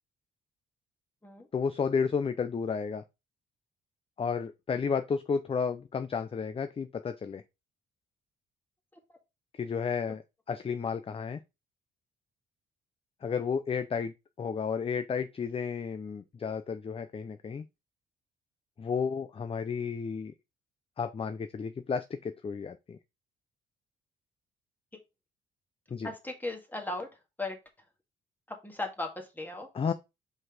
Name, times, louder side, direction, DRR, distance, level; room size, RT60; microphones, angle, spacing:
voice 1, 1.5-3.0 4.2-7.4 9.5-10.2 10.5-11.4 13.2-17.6 18.8-20.3 21.0-23.0 25.9-26.1 29.7-29.9, left 6 dB, 30° left, 0.5 m, -32 dB
voice 2, 26.0-27.1 27.4-27.6 28.5-29.7, left 2 dB, 10° left, 1.9 m, -37 dB
5.2 x 4.0 x 5.0 m
cardioid pair, 90°, 20 cm